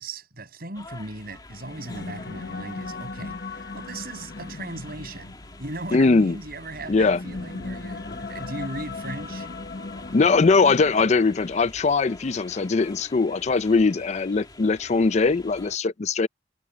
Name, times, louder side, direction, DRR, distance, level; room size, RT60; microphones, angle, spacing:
voice 1, 0.0-5.3 5.6-9.5, right 2 dB, 55° right, 7.8 m, -37 dB
sound 1, 0.7-15.8, left 2 dB, 25° left, 2.4 m, -46 dB
sound 2, 1.5-11.4, left 3 dB, 55° left, 1.0 m, -38 dB
voice 2, 5.9-6.4 6.9-7.2 10.1-16.3, left 4 dB, 40° left, 0.5 m, -21 dB
head